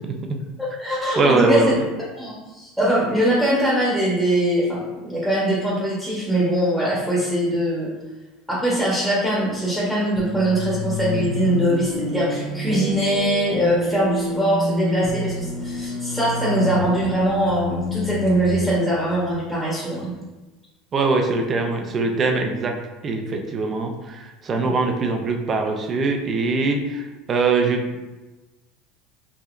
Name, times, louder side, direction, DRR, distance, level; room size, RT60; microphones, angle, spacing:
voice 1, 0.6-1.7 2.2-7.9 8.5-20.1, right 1 dB, ahead, -7 dB, 1.1 m, -22 dB
voice 2, 1.2-1.8 20.9-28.0, right 3 dB, 30° right, 4 dB, 0.6 m, -22 dB
sound 1, 10.1-20.0, left 2 dB, 45° left, 0.8 m, -29 dB
4.8 x 2.8 x 2.5 m, 1.1 s
supercardioid pair, 125°, 0 cm